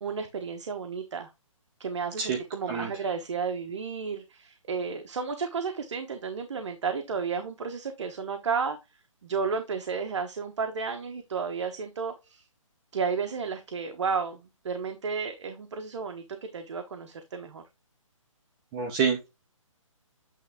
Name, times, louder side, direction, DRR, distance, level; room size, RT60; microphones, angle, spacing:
voice 1, 0.0-1.3 1.8-8.8 9.2-12.4 12.9-14.4 14.6-16.2 16.5-17.6, right 5 dB, 55° right, 6 dB, 1.1 m, -32 dB
voice 2, 18.7-19.3, right 6 dB, 15° right, 2 dB, 0.7 m, -27 dB
8.9 x 3.3 x 3.5 m, 0.24 s
hypercardioid pair, 165°, 17 cm